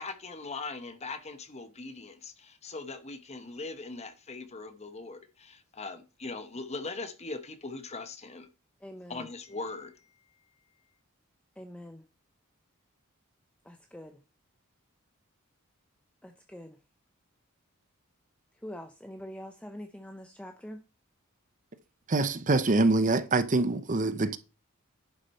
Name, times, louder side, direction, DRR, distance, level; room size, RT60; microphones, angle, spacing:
voice 1, 0.0-8.5 9.1-9.9, left 3 dB, 30° left, 1.0 m, -40 dB
voice 2, 8.8-9.3 11.6-12.0 13.7-14.2 16.2-16.8 18.6-20.8, equal, 5° left, 0.7 m, -44 dB
voice 3, 22.1-24.4, right 2 dB, 35° right, 0.7 m, -25 dB
11.0 x 6.7 x 4.3 m
head